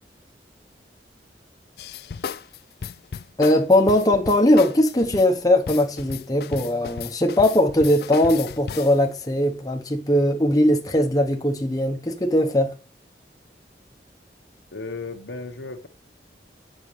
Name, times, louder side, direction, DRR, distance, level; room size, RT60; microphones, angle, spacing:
sound 1, 1.8-9.0, left 6 dB, 60° left, 0.4 m, -35 dB
voice 1, 3.4-12.8, left 1 dB, 20° left, 1.0 m, -20 dB
voice 2, 14.7-15.9, left 3 dB, 90° left, 1.2 m, -34 dB
7.5 x 6.1 x 3.2 m
head